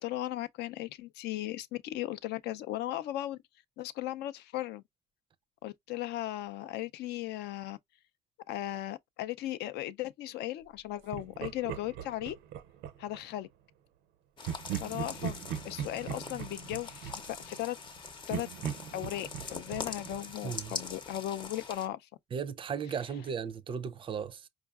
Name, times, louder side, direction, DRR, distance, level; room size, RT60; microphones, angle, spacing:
voice 1, 0.0-3.4 3.8-4.8 5.6-7.8 8.5-12.4 13.0-13.5 14.7-15.4 15.6-17.8 18.3-18.5 18.9-22.1, left 14 dB, 75° left, 0.4 m, -37 dB
Laughter, 11.1-13.2 14.4-17.9 18.3-21.1, right 9 dB, 85° right, 0.5 m, -40 dB
sound 1, 14.4-21.9, left 4 dB, 30° left, 0.6 m, -43 dB
voice 2, 20.4-20.8 22.3-24.5, right 7 dB, 30° right, 0.4 m, -36 dB
4.6 x 2.4 x 2.3 m
cardioid pair, 110°, 17 cm